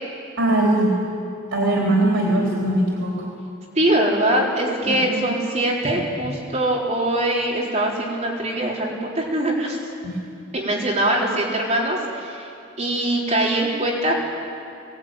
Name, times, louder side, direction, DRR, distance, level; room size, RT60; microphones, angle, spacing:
voice 1, 0.4-1.0 1.5-3.1 4.9-5.3 10.0-10.2, right 1 dB, 90° right, -3 dB, 3.9 m, -20 dB
voice 2, 3.7-9.8 10.5-12.5 12.8-14.1, right 1 dB, 35° right, -4 dB, 4.1 m, -22 dB
22.5 x 19.0 x 9.1 m, 2.6 s
head